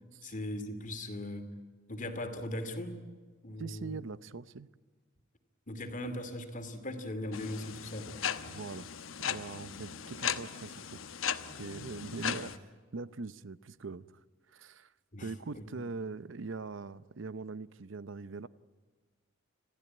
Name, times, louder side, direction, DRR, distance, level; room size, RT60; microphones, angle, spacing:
voice 1, 0.2-1.5 1.9-3.0 3.4-4.0 5.7-8.1 9.6-9.7 12.2-12.3 15.1-15.6, left 1 dB, 40° left, 2.5 m, -39 dB
voice 2, 3.6-4.7 8.5-8.9 9.2-11.0 11.5-12.5 12.9-14.2 14.5-14.9 15.2-18.5, right 4 dB, 65° right, 0.7 m, -42 dB
sound 1, 7.3-12.6, left 8 dB, 85° left, 1.1 m, -37 dB
27.0 x 15.5 x 9.4 m
head